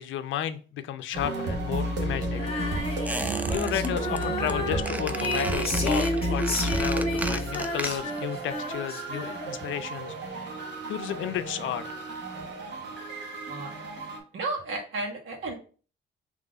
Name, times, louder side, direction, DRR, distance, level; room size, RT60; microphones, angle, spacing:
voice 1, 0.0-10.5 10.9-11.8, left 11 dB, 75° left, 11 dB, 0.5 m, -33 dB
sound 1, 1.1-14.2, right 1 dB, 60° right, 1.2 m, -32 dB
Female singing, 2.3-9.7, left 1 dB, 30° left, 1.2 m, -31 dB
Squeak, 3.0-3.9 4.1-4.5 4.8-8.2 8.5-8.6, right 2 dB, 10° right, 0.4 m, -34 dB
voice 2, 14.3-15.5, right 3 dB, 85° right, -1 dB, 1.5 m, -32 dB
3.9 x 3.0 x 3.8 m, 0.38 s
cardioid pair, 90°, 20 cm